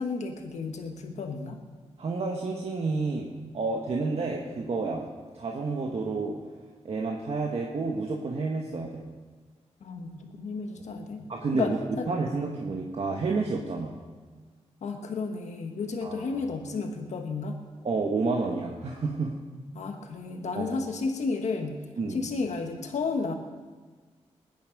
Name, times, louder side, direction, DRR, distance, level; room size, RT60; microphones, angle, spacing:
voice 1, 0.0-1.6 9.8-12.1 12.4-12.6 14.8-17.6 19.7-21.8 22.1-23.3, left 4 dB, 85° left, 4 dB, 1.4 m, -32 dB
voice 2, 2.0-5.1 5.3-6.4 6.8-9.0 11.3-13.9 16.0-16.3 17.8-19.3 20.5-20.8 22.0-22.2, right 3 dB, 60° right, 0 dB, 1.4 m, -30 dB
20.5 x 9.6 x 5.3 m, 1.4 s
wide cardioid pair, 90°, 12 cm